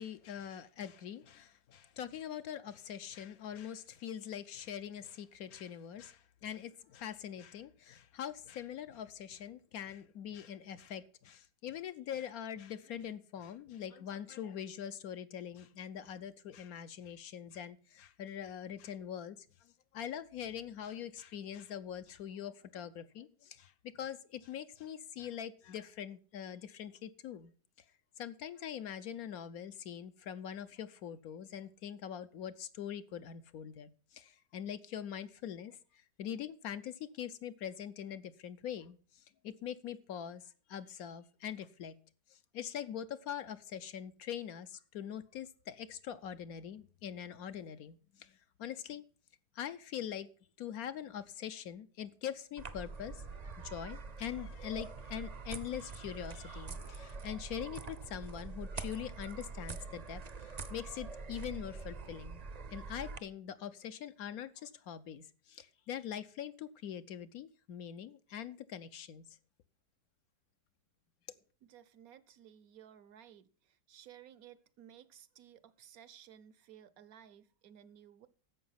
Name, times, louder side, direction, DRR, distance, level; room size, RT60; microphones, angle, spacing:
voice 1, 0.0-27.5 28.2-42.0 42.3-49.0 49.5-50.3 50.6-53.2 53.6-62.4 62.7-69.3, left 9 dB, 70° left, 1.1 m, -43 dB
sound 1, 52.6-63.2, right 4 dB, 40° right, 0.6 m, -45 dB
voice 2, 71.6-78.3, right 10 dB, 65° right, 1.1 m, -57 dB
11.5 x 7.8 x 5.6 m
omnidirectional pair, 1.7 m